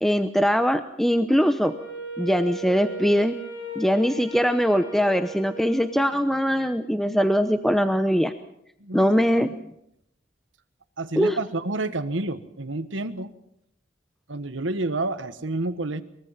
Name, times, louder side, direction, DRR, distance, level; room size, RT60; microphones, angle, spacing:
voice 1, 0.0-1.7 2.2-3.4 3.8-8.3 8.9-9.7 11.2-11.4, equal, ahead, 9 dB, 0.8 m, -22 dB
Wind instrument woodwind instrument, 1.6-6.3, right 2 dB, 80° left, 4.1 m, -37 dB
voice 2, 8.8-9.2 11.0-13.3 14.3-16.0, right 2 dB, 80° right, 11 dB, 1.4 m, -29 dB
23.5 x 22.5 x 5.8 m, 0.77 s
head